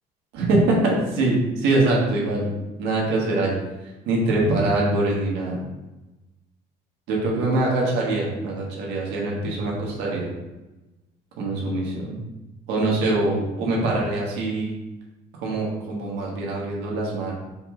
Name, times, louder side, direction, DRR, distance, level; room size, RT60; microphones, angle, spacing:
voice 1, 0.3-2.5 2.8-3.5 4.1-5.6 7.1-10.3 11.4-12.1 12.7-14.7 15.4-17.3, right 2 dB, 90° right, -3 dB, 1.4 m, -23 dB
4.5 x 3.2 x 3.7 m, 1.1 s
cardioid pair, 110°, 17 cm